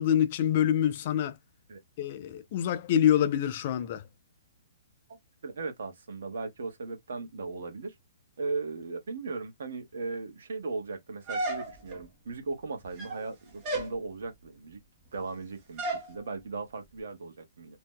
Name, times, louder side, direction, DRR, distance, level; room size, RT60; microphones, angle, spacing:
voice 1, 0.0-1.3 2.0-4.0, left 10 dB, 30° left, 0.4 m, -26 dB
voice 2, 5.4-7.9 8.4-14.8 15.1-17.8, right 3 dB, 70° right, 1.0 m, -37 dB
sound 1, 11.3-12.0 12.8-13.3 13.6-14.0 15.8-16.1, right 2 dB, 20° right, 0.7 m, -33 dB
2.8 x 2.1 x 3.5 m
hypercardioid pair, 175°, 0 cm